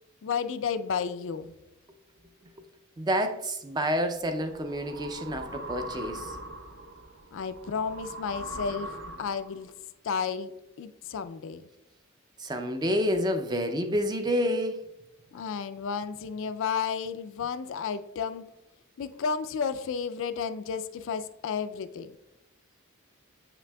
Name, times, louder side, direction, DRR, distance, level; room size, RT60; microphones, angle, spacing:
voice 1, 0.2-1.5 7.3-9.7 10.0-10.5 10.8-11.7 15.3-18.5 19.0-22.2, left 6 dB, 65° left, 0.3 m, -32 dB
voice 2, 3.0-6.3 12.4-14.9, equal, 20° right, 0.4 m, -28 dB
sound 1, 4.1-9.6, right 1 dB, 60° right, 0.9 m, -41 dB
7.3 x 5.9 x 2.2 m
head